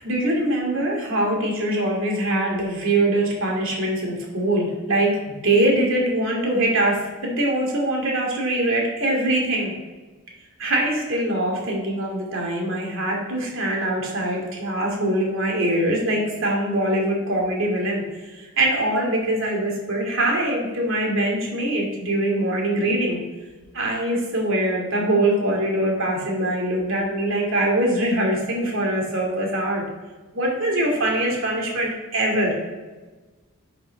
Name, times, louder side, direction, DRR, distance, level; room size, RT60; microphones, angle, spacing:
voice 1, 0.0-5.1 5.4-9.7 10.6-18.0 18.6-23.2 23.7-29.8 30.3-32.5, right 1 dB, 60° right, -1 dB, 2.6 m, -23 dB
11.0 x 5.4 x 4.0 m, 1.2 s
head